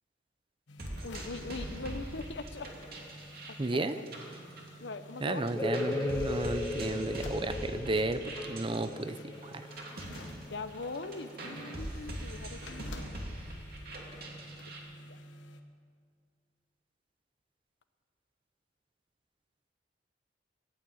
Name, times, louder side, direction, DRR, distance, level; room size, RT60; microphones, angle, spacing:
sound 1, 0.7-15.6, equal, 90° left, 1.2 m, -50 dB
sound 2, 0.8-5.2 5.5-14.8, right 1 dB, 55° right, 2.6 m, -42 dB
voice 1, 1.0-2.7 3.5-4.1 4.8-5.5 10.5-13.2 15.1-15.2, left 3 dB, 70° left, 10 dB, 0.9 m, -41 dB
voice 2, 3.6-4.0 5.2-9.6, right 2 dB, 30° right, 11 dB, 0.6 m, -33 dB
sound 3, 5.5-10.9, left 3 dB, 15° left, 0.6 m, -37 dB
15.0 x 9.2 x 8.5 m, 2.1 s
head